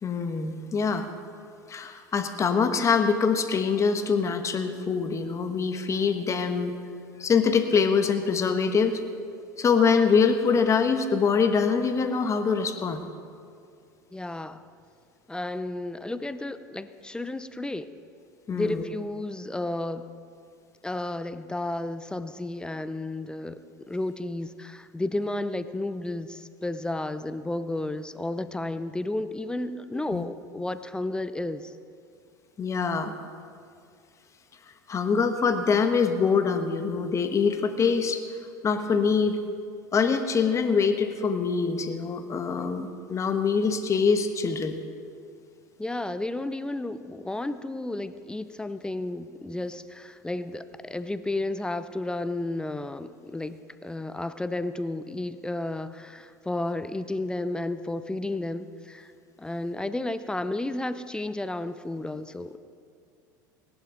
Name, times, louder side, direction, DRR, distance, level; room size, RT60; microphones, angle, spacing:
voice 1, 0.0-1.1 1.7-6.8 7.2-9.0 9.6-13.0 18.5-18.8 29.9-30.2 32.6-33.1 34.9-38.2 38.6-39.4 39.9-44.8, left 5 dB, 30° left, 8 dB, 1.1 m, -24 dB
voice 2, 14.1-14.6 15.3-17.9 18.5-20.1 20.8-23.6 23.9-31.7 45.8-59.1 59.4-62.6, left 2 dB, 10° left, 12 dB, 0.5 m, -32 dB
18.0 x 11.5 x 3.8 m, 2.3 s
hypercardioid pair, 80°, 11 cm